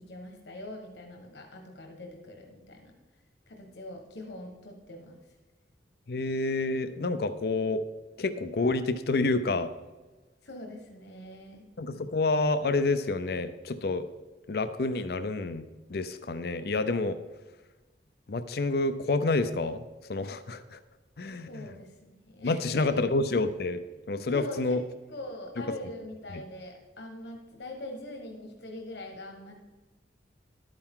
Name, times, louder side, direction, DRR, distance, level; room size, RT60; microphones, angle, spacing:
voice 1, 0.1-2.9 3.5-5.2 10.4-11.6 21.3-23.0 24.3-24.8 25.1-29.6, left 1 dB, 75° left, 2 dB, 1.4 m, -42 dB
voice 2, 6.1-7.8 8.2-9.7 11.8-14.0 14.5-17.2 18.3-19.8 20.1-20.8 21.2-21.7 22.4-23.8 24.1-24.8 26.3-26.4, left 3 dB, 55° left, 10 dB, 0.5 m, -28 dB
11.5 x 8.9 x 3.7 m, 1.2 s
head